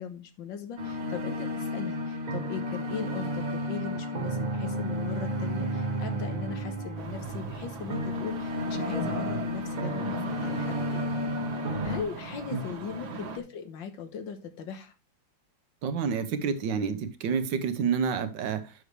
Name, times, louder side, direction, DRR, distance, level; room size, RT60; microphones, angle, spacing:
voice 1, 0.0-11.2 11.8-14.9, left 6 dB, 75° left, 1.8 m, -39 dB
sound 1, 0.8-12.0, equal, 45° right, 1.7 m, -32 dB
sound 2, 7.0-13.4, right 2 dB, 85° right, 2.2 m, -39 dB
voice 2, 15.8-18.7, right 6 dB, 70° right, 1.6 m, -29 dB
9.6 x 6.2 x 3.3 m
omnidirectional pair, 2.1 m